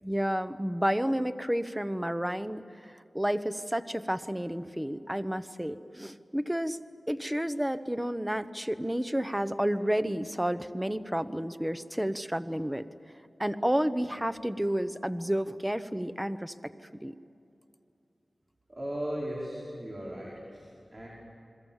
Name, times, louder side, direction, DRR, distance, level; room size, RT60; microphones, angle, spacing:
voice 1, 0.0-6.8 7.1-12.9 13.4-16.7 17.0-17.1, equal, 10° right, 11 dB, 1.0 m, -31 dB
voice 2, 18.7-21.1, equal, 40° right, -5 dB, 5.0 m, -37 dB
30.0 x 21.5 x 7.4 m, 2.7 s
wide cardioid pair, 60°, 0 cm